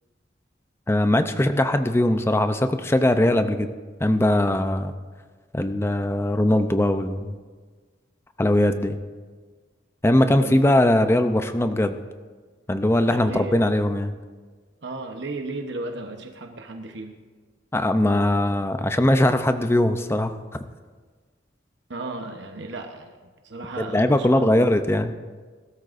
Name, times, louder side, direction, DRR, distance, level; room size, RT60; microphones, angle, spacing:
voice 1, 0.9-3.7 4.0-4.9 5.5-7.3 8.4-9.0 10.0-12.0 12.7-14.1 17.7-20.4 23.8-25.1, left 1 dB, 15° left, 8 dB, 0.6 m, -20 dB
voice 2, 10.4-10.7 13.1-13.7 14.8-17.2 21.9-23.2 23.4-24.7, right 2 dB, 70° right, 4 dB, 1.0 m, -34 dB
20.0 x 13.0 x 2.6 m, 1.4 s
head